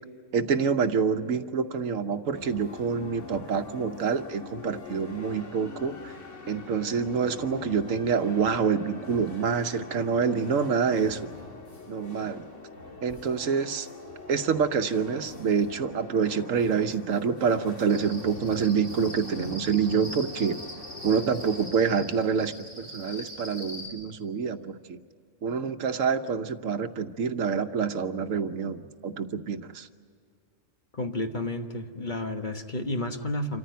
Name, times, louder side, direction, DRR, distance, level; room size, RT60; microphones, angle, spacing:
voice 1, 0.3-6.1 6.5-11.2 11.9-12.4 13.0-13.9 14.3-20.6 21.0-25.0 25.4-29.9, right 6 dB, 80° right, 9 dB, 1.3 m, -27 dB
sound 1, 2.3-21.7, left 3 dB, 65° left, 2.2 m, -44 dB
Cricket, 17.9-23.9, equal, 15° left, 5.2 m, -42 dB
voice 2, 30.9-33.6, left 1 dB, 40° left, 5 dB, 1.4 m, -31 dB
27.5 x 14.5 x 9.3 m, 2.3 s
omnidirectional pair, 1.3 m